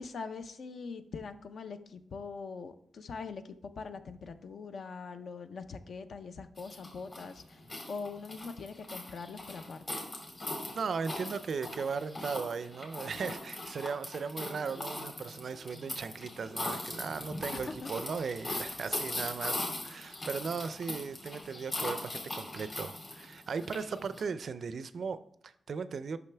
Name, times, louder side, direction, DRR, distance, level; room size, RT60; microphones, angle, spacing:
voice 1, 0.0-7.6 7.9-9.8 14.4-14.5 17.5-17.9, left 4 dB, 55° left, 10 dB, 0.5 m, -42 dB
sound 1, 6.6-24.2, left 2 dB, 35° left, 2.2 m, -40 dB
voice 2, 10.7-26.2, right 5 dB, 50° right, 13 dB, 0.4 m, -37 dB
8.8 x 6.0 x 3.3 m, 0.71 s
wide cardioid pair, 175°, 0 cm